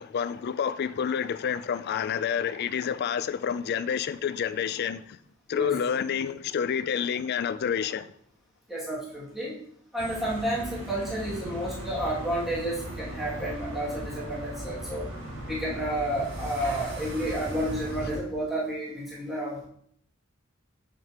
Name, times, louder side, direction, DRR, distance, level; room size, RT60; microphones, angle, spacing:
voice 1, 0.0-5.0 5.5-8.1, left 7 dB, 50° left, 0.3 m, -28 dB
voice 2, 8.7-9.6 9.9-15.1 15.5-19.7, right 1 dB, ahead, 2.2 m, -31 dB
sound 1, 10.0-18.2, right 1 dB, 85° right, 2.2 m, -38 dB
6.8 x 6.5 x 2.9 m
head